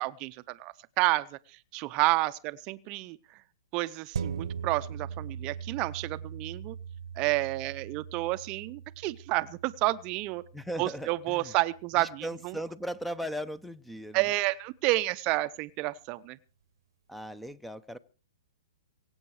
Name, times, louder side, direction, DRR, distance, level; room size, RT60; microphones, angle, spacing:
voice 1, 0.0-3.2 3.7-6.8 7.2-10.4 10.8-12.6 14.1-16.4, right 19 dB, 35° right, 0.7 m, -30 dB
sound 1, 4.1-13.0 13.4-13.5, right 7 dB, 75° right, 1.0 m, -41 dB
voice 2, 10.5-11.5 12.0-14.3 17.1-18.0, equal, ahead, 0.8 m, -38 dB
23.5 x 8.8 x 4.8 m
hypercardioid pair, 130°, 3 cm